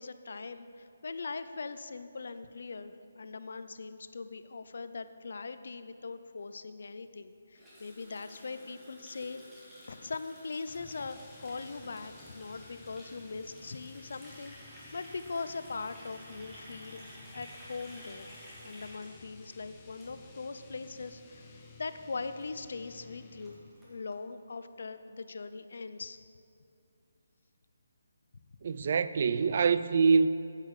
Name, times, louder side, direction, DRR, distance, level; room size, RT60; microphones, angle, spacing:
voice 1, 0.0-9.4 9.9-17.0 17.3-18.4 18.6-26.2, left 4 dB, 65° left, 0.5 m, -41 dB
Water tap faucet, 7.5-20.6 20.8-21.1 21.4-21.7 22.0-22.1 22.3-22.4 22.8-22.9 23.1-24.2, equal, 5° right, 1.8 m, -53 dB
sound 1, 10.7-23.8, left 3 dB, 15° left, 0.8 m, -55 dB
voice 2, 28.6-30.3, right 5 dB, 45° right, 0.3 m, -25 dB
10.0 x 8.4 x 4.9 m
hypercardioid pair, 165°, 0 cm